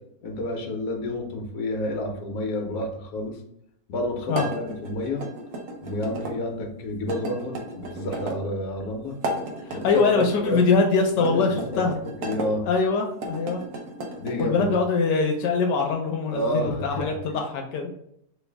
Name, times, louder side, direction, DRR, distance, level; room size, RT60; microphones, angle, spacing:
voice 1, 0.2-3.4 3.9-5.2 5.8-9.1 9.7-10.6 11.2-11.8 12.2-12.6 14.2-14.7 16.3-17.4, left 1 dB, 70° left, 2 dB, 1.3 m, -29 dB
sound 1, 4.3-6.3 7.1-8.4 9.1-10.3 11.2-12.5 13.1-14.5, right 2 dB, 65° right, 1.2 m, -34 dB
voice 2, 9.6-11.9 12.6-13.6 14.4-17.9, left 4 dB, 85° left, 2 dB, 1.3 m, -23 dB
3.2 x 3.1 x 3.3 m, 0.73 s
omnidirectional pair, 1.8 m